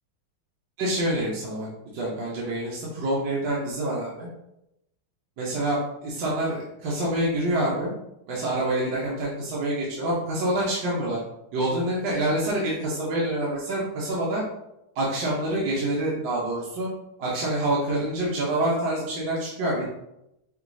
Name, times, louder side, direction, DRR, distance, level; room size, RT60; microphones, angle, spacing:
voice 1, 0.8-1.7 1.9-4.3 5.4-7.9 8.3-11.2 11.5-14.4 14.9-16.9 17.2-19.8, right 1 dB, 65° right, -5 dB, 1.5 m, -26 dB
6.0 x 3.0 x 2.6 m, 0.86 s
omnidirectional pair, 2.3 m